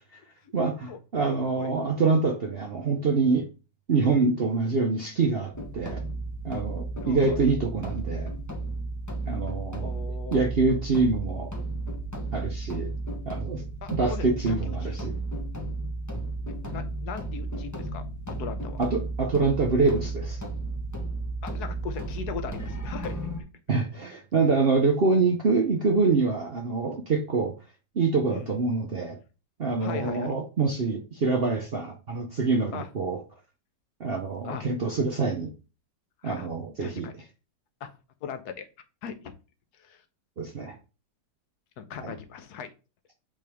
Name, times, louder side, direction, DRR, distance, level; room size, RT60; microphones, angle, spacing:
voice 1, 0.5-3.5 3.9-6.0 6.4-8.3 9.3-9.9 10.3-11.5 12.3-12.9 13.3-13.6 13.9-15.1 18.8-20.4 23.7-27.5 27.9-29.2 29.6-33.2 34.0-35.5 36.2-37.1 40.4-40.8 42.0-42.1, right 4 dB, 50° right, 0.7 m, -25 dB
sound 1, 5.5-23.4, right 2 dB, 15° left, 0.7 m, -33 dB
voice 2, 7.0-7.4 9.8-10.5 13.8-15.1 16.7-18.8 21.4-23.3 28.3-28.6 29.8-30.3 32.7-32.9 34.4-34.6 36.2-36.5 36.8-37.1 37.8-38.7 39.0-39.3 39.7-40.0 41.8-42.7, left 7 dB, 65° left, 1.3 m, -39 dB
8.5 x 3.3 x 3.5 m
omnidirectional pair, 1.9 m